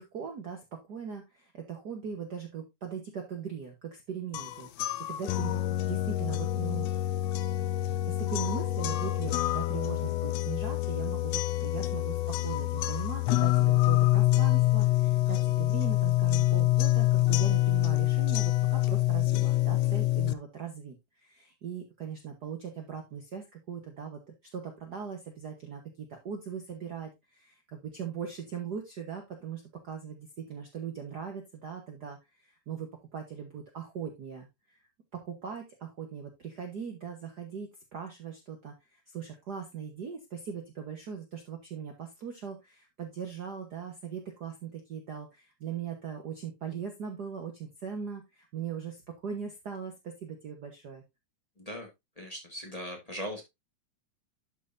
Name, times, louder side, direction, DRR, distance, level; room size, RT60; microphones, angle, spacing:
voice 1, 0.0-6.9 8.1-24.2 24.5-34.8 35.1-51.0, right 7 dB, 65° right, 3 dB, 1.0 m, -40 dB
sound 1, 4.3-20.3, left 16 dB, 90° left, 1.4 m, -26 dB
voice 2, 51.6-51.9 52.2-53.4, equal, 15° left, 1 dB, 1.3 m, -39 dB
12.0 x 5.6 x 2.6 m, 0.20 s
omnidirectional pair, 3.7 m